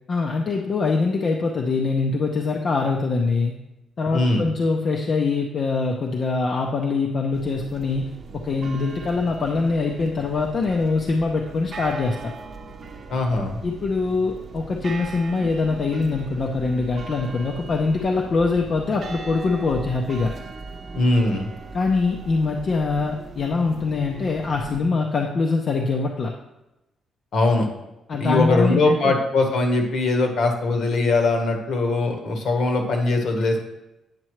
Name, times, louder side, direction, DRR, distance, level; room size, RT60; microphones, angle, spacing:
voice 1, 0.1-3.5 4.0-12.3 13.6-20.3 21.7-26.3 28.1-29.1, left 4 dB, 40° left, 1 dB, 0.7 m, -23 dB
voice 2, 4.1-4.5 13.1-13.6 20.9-21.5 27.3-27.7 28.2-33.6, left 2 dB, 55° left, 3 dB, 1.3 m, -21 dB
sound 1, 7.3-24.8, right 4 dB, 40° right, 0.7 m, -39 dB
8.8 x 6.8 x 3.2 m, 0.95 s
cardioid pair, 145°, 0 cm